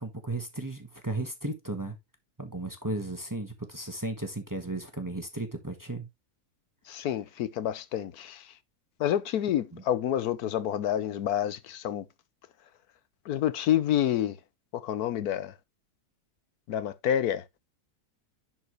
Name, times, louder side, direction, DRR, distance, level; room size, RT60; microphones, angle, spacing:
voice 1, 0.0-2.0 2.4-6.1 9.7-9.8, right 2 dB, 15° right, 1.1 m, -35 dB
voice 2, 6.9-8.4 9.0-12.0 13.3-14.4 14.8-15.5 16.7-17.4, left 10 dB, 75° left, 1.2 m, -28 dB
11.0 x 4.6 x 3.0 m
omnidirectional pair, 1.7 m